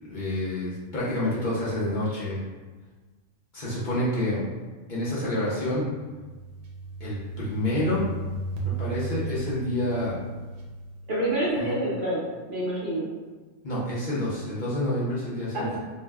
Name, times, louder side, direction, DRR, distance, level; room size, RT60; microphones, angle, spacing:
voice 1, 0.0-2.4 3.5-4.4 4.9-5.9 7.0-8.0 8.6-10.1 11.6-11.7 13.6-15.8, left 1 dB, 50° left, -8 dB, 0.7 m, -28 dB
sound 1, 5.9-11.6, right 3 dB, 85° right, 1.0 m, -35 dB
voice 2, 11.1-12.2 12.5-13.1 15.5-15.8, right 1 dB, 50° right, -6 dB, 0.7 m, -27 dB
2.6 x 2.1 x 3.4 m, 1.3 s
omnidirectional pair, 1.2 m